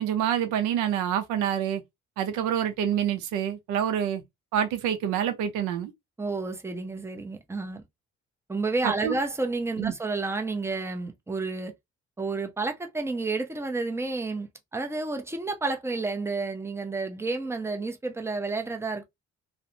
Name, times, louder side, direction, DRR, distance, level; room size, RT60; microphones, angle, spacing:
voice 1, 0.0-1.8 2.2-4.2 4.5-5.9 8.8-9.1 9.8-9.9, right 9 dB, 85° right, 0.6 m, -27 dB
voice 2, 6.2-7.8 8.5-11.7 12.2-19.0, right 3 dB, 10° right, 0.6 m, -30 dB
2.4 x 2.1 x 2.6 m
supercardioid pair, 60°, 29 cm